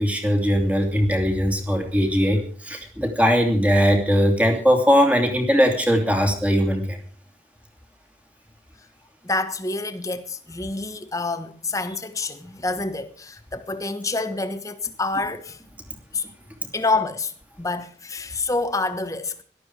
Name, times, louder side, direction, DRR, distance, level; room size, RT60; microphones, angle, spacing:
voice 1, 0.0-7.0, equal, 10° right, 2.8 m, -20 dB
voice 2, 9.2-15.6 16.1-16.3 16.7-17.3 17.6-19.3, left 3 dB, 20° left, 1.2 m, -27 dB
17.5 x 12.5 x 4.8 m
head